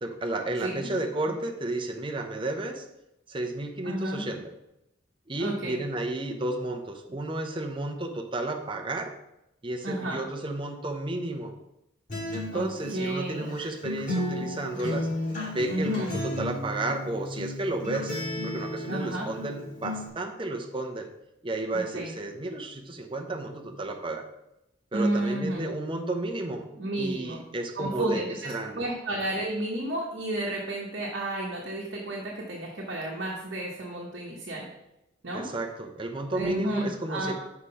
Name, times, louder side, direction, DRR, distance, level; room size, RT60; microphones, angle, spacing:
voice 1, 0.0-2.9 3.3-4.5 5.3-9.1 9.6-11.5 12.3-15.1 15.5-18.2 18.4-21.1 21.4-24.3 24.9-26.7 27.0-28.8 35.3-37.3, right 2 dB, 25° right, 3 dB, 0.7 m, -32 dB
voice 2, 3.8-4.3 5.4-5.8 9.8-10.3 12.5-12.7 12.9-13.5 15.7-16.2 18.9-19.3 21.7-22.2 24.9-25.7 26.8-27.4 27.8-34.7 35.2-35.5 36.3-37.3, right 1 dB, 55° right, -4 dB, 1.1 m, -32 dB
Acoustic guitar, 12.1-20.1, left 1 dB, 40° left, 2.3 m, -34 dB
5.9 x 4.8 x 5.6 m, 0.88 s
head